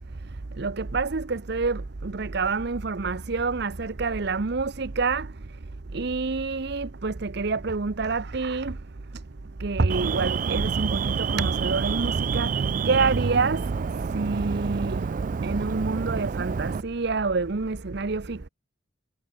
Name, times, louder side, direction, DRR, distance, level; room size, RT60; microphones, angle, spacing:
voice 1, 0.6-5.3 5.9-8.8 9.6-12.5 12.8-13.7 14.1-15.1 15.4-18.5, right 4 dB, 60° right, 0.8 m, -27 dB
Alarm, 9.9-16.8, right 5 dB, 45° right, 0.3 m, -28 dB
head